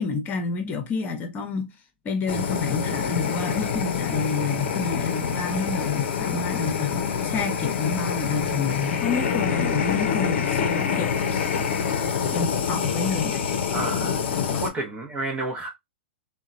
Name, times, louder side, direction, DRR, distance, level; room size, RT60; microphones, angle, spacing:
voice 1, 0.0-1.7 2.0-6.9 7.2-11.4 12.3-13.4 14.5-14.6, left 4 dB, 30° left, 0.8 m, -29 dB
Fire, 2.3-14.7, left 7 dB, 65° left, 0.6 m, -26 dB
voice 2, 13.7-15.7, right 2 dB, 20° right, 0.7 m, -31 dB
2.9 x 2.2 x 2.5 m
hypercardioid pair, 110°, 6 cm